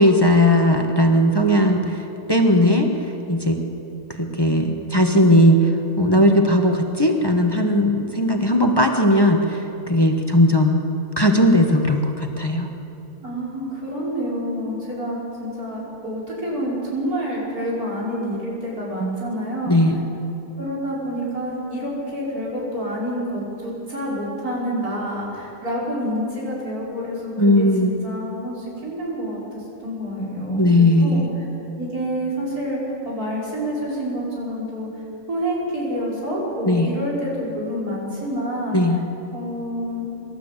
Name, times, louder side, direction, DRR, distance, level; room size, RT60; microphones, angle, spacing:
voice 1, 0.0-3.6 4.2-10.8 11.2-12.7 19.0-19.2 19.7-20.0 27.4-27.9 30.2-31.3 36.6-36.9 38.7-39.0, left 1 dB, 15° left, 3 dB, 1.3 m, -18 dB
voice 2, 13.2-19.8 20.6-31.2 31.8-38.8 39.3-40.1, equal, 90° right, -5 dB, 6.0 m, -28 dB
25.0 x 12.5 x 8.2 m, 2.9 s
omnidirectional pair, 1.5 m